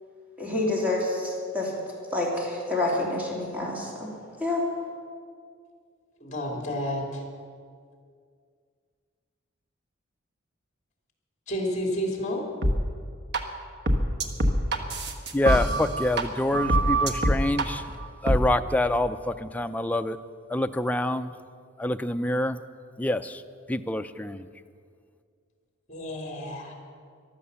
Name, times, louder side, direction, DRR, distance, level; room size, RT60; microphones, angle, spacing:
voice 1, 0.4-1.3 1.5-1.7 2.1-3.9 4.4-4.6, left 2 dB, 10° right, -3 dB, 2.9 m, -27 dB
voice 2, 6.2-7.2 11.5-12.4 25.9-26.7, equal, 35° left, 1 dB, 2.8 m, -30 dB
sound 1, 12.6-12.7 13.3-13.4 13.9-16.2 16.5-17.7 18.3-18.4, right 1 dB, 55° right, 1.3 m, -24 dB
voice 3, 15.3-17.8 18.2-20.2 20.5-21.3 21.8-22.6 23.0-23.4 23.7-24.4, left 1 dB, 10° left, 8 dB, 0.4 m, -26 dB
14.0 x 12.0 x 7.0 m, 2.2 s
head